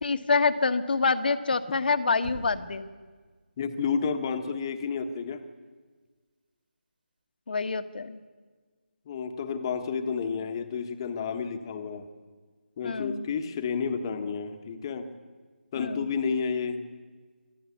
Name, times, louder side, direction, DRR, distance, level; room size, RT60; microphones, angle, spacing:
voice 1, 0.0-2.9 7.5-8.2 12.8-13.2 15.8-16.1, left 4 dB, 55° left, 9 dB, 1.4 m, -26 dB
Knock, 2.2-2.9, right 3 dB, 50° right, 3.9 m, -41 dB
voice 2, 3.6-5.4 9.1-12.1 12.8-15.1 15.7-16.9, left 5 dB, 25° left, 7 dB, 1.4 m, -31 dB
26.0 x 13.0 x 8.5 m, 1.5 s
figure-of-eight pair, 160°, 6 cm